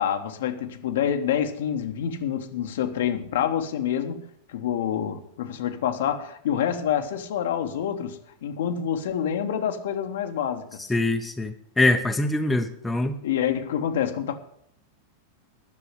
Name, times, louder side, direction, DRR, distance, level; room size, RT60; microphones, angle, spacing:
voice 1, 0.0-4.2 4.5-10.8 13.2-14.4, left 9 dB, 60° left, 1.2 m, -27 dB
voice 2, 10.9-13.2, left 2 dB, 10° left, 1.0 m, -23 dB
11.0 x 6.8 x 9.4 m
figure-of-eight pair, 90°, 0 cm